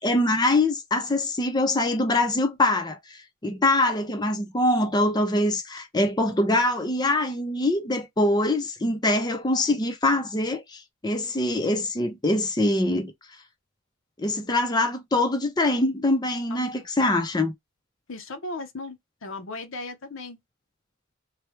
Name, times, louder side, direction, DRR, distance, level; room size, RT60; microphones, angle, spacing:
voice 1, 0.0-13.1 14.2-17.5, left 1 dB, 20° left, 0.6 m, -24 dB
voice 2, 16.5-16.9 18.1-20.4, left 2 dB, 65° left, 0.8 m, -37 dB
3.3 x 2.3 x 3.0 m
head